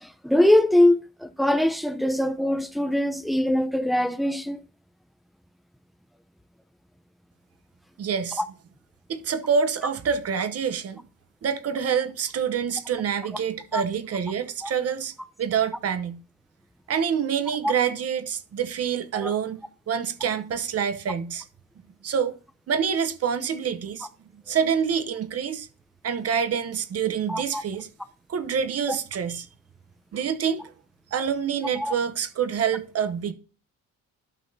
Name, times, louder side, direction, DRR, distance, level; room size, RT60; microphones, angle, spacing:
voice 1, 0.0-4.6 13.7-13.8 14.6-14.7 17.6-17.7 19.1-19.3 27.3-27.6 31.8-31.9, left 1 dB, ahead, 0.6 m, -22 dB
voice 2, 8.0-8.4 9.1-11.0 11.4-16.2 16.9-19.6 19.9-21.4 22.0-22.3 22.7-24.1 24.3-25.7 26.0-27.9 28.3-29.5 30.1-30.7 31.1-33.3, right 7 dB, 50° right, 1.0 m, -26 dB
12.0 x 5.7 x 2.8 m
cardioid pair, 90°, 30 cm